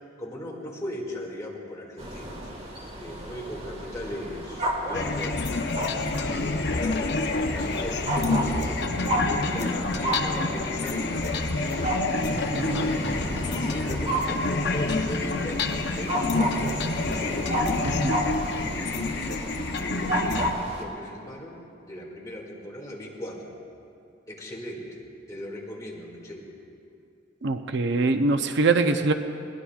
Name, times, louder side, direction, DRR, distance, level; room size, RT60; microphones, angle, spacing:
voice 1, 0.2-2.5 3.0-5.4 6.1-8.9 9.3-11.3 13.6-17.7 18.6-19.4 19.8-23.6 24.3-25.0 25.3-26.5, equal, 15° left, -3 dB, 2.2 m, -39 dB
sound 1, 2.0-20.8, right 1 dB, 35° right, 1.7 m, -32 dB
sound 2, 4.9-20.5, left 3 dB, 60° left, 0.8 m, -28 dB
voice 2, 12.5-12.9 17.8-18.2 27.4-29.1, right 3 dB, 65° right, 7 dB, 0.6 m, -24 dB
21.5 x 19.5 x 2.4 m, 2.6 s
head